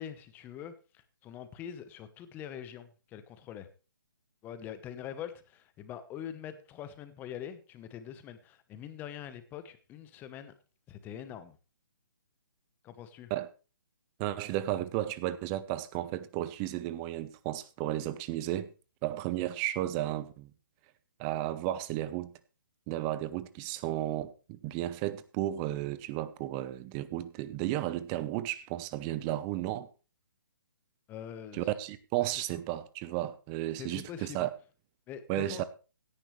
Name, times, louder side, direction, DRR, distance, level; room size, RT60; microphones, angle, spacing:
voice 1, 0.0-3.7 4.4-10.5 10.9-11.6 12.8-13.3 31.1-31.7 33.8-34.5 35.1-35.6, left 9 dB, 15° left, 1.0 m, -44 dB
voice 2, 14.2-18.7 19.0-20.5 21.2-22.3 22.9-29.9 31.5-34.5 35.3-35.6, right 14 dB, 20° right, 0.8 m, -33 dB
16.5 x 10.0 x 3.2 m
hypercardioid pair, 155°, 12 cm